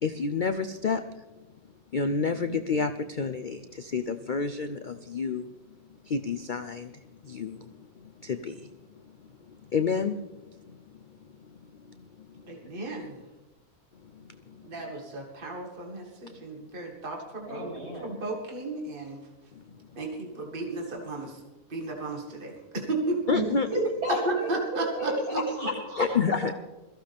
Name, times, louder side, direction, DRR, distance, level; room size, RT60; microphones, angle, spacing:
voice 1, 0.0-1.3 1.9-5.5 6.0-9.0 9.5-12.7 13.9-14.7 16.3-16.4 19.5-19.9 23.3-23.7 26.0-26.5, left 5 dB, 90° left, 9 dB, 0.4 m, -31 dB
voice 2, 12.5-13.2 14.6-17.7 18.0-19.2 20.0-21.4 21.7-23.2 24.3-25.4, right 2 dB, 35° right, 0 dB, 2.1 m, -34 dB
voice 3, 17.4-18.1 23.3-26.5, equal, 80° right, -5 dB, 7.6 m, -31 dB
22.0 x 14.5 x 3.5 m, 1.1 s
omnidirectional pair, 1.7 m